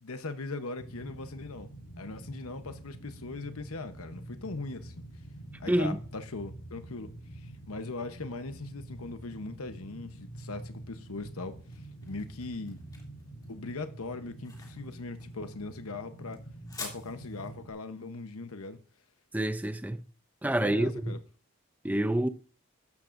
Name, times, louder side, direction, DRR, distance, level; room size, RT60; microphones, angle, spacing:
voice 1, 0.0-1.7 2.0-5.0 5.6-11.5 12.0-12.8 13.5-16.4 16.8-18.8 20.6-21.2, left 3 dB, 80° left, 1.0 m, -40 dB
sound 1, 0.8-17.7, right 1 dB, 60° left, 4.9 m, -47 dB
voice 2, 5.7-6.0 19.3-20.0 20.4-21.2 21.8-22.3, right 1 dB, 5° right, 0.5 m, -27 dB
sound 2, 11.5-20.2, left 4 dB, 15° left, 2.8 m, -49 dB
13.5 x 12.0 x 2.6 m
head